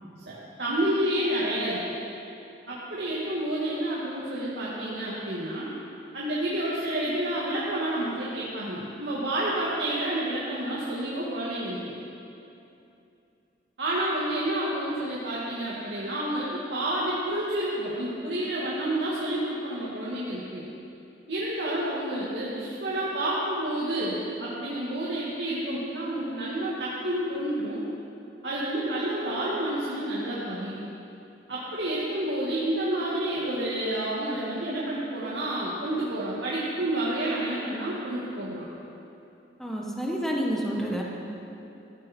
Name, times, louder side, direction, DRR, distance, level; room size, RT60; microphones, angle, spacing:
voice 1, 0.3-1.8 2.7-5.7 6.1-11.9 13.8-20.6 21.3-27.8 28.4-30.8 31.5-38.7, right 1 dB, 75° right, -7 dB, 2.2 m, -29 dB
voice 2, 39.6-41.0, equal, ahead, -3 dB, 1.4 m, -29 dB
15.5 x 15.0 x 4.5 m, 2.8 s
head